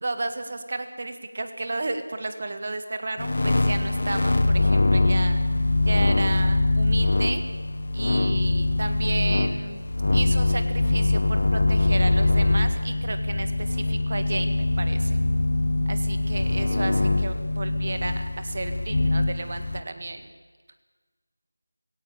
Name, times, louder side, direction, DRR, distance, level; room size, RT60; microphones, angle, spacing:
voice 1, 0.0-5.4 5.9-7.4 7.9-9.8 10.1-15.2 15.9-20.3, right 2 dB, 40° right, 8 dB, 1.7 m, -33 dB
sound 1, 3.2-19.8, left 2 dB, 50° left, 1.5 m, -23 dB
19.5 x 17.5 x 8.5 m, 1.4 s
figure-of-eight pair, 175°, 0 cm